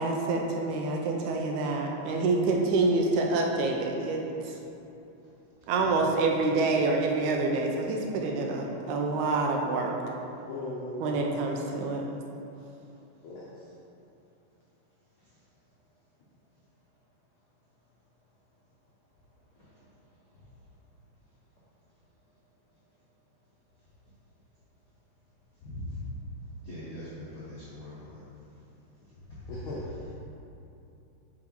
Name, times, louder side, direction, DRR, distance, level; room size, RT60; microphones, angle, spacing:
voice 1, 0.0-4.5 5.7-9.9 11.0-12.0, right 3 dB, 80° right, 1 dB, 2.1 m, -27 dB
voice 2, 2.5-2.8 19.5-19.9 20.3-20.5 25.6-26.0 26.6-28.2 29.1-30.0, left 1 dB, 65° left, -10 dB, 0.9 m, -42 dB
voice 3, 5.8-6.1 10.5-11.0 13.2-13.4 29.5-29.8, left 2 dB, 90° left, -6 dB, 1.1 m, -38 dB
6.1 x 5.1 x 4.4 m, 2.8 s
omnidirectional pair, 3.6 m